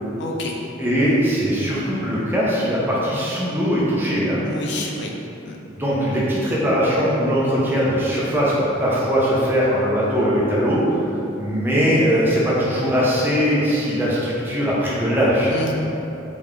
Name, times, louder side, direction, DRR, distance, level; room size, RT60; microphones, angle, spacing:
voice 1, 0.2-0.5 4.4-5.1 5.5-5.6 15.5-15.7, left 2 dB, 55° left, 0 dB, 0.4 m, -28 dB
voice 2, 0.8-4.4 5.8-11.0 11.4-15.5, equal, 10° right, -7 dB, 0.6 m, -20 dB
3.6 x 3.5 x 3.3 m, 2.9 s
head